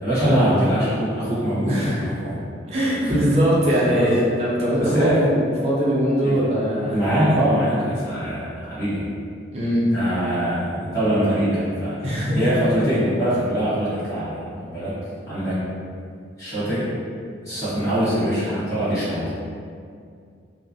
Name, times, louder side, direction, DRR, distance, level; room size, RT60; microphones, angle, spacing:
voice 1, 0.0-2.5 3.0-3.3 3.7-4.0 4.8-5.2 6.2-6.4 6.9-9.0 9.9-12.0 12.3-14.9 15.3-15.6 16.4-16.8 17.4-19.3, equal, 15° left, -15 dB, 1.2 m, -23 dB
voice 2, 1.7-2.0 2.7-7.0 9.5-9.8 12.0-12.4, equal, 35° right, -7 dB, 0.5 m, -21 dB
2.3 x 2.0 x 2.6 m, 2.2 s
head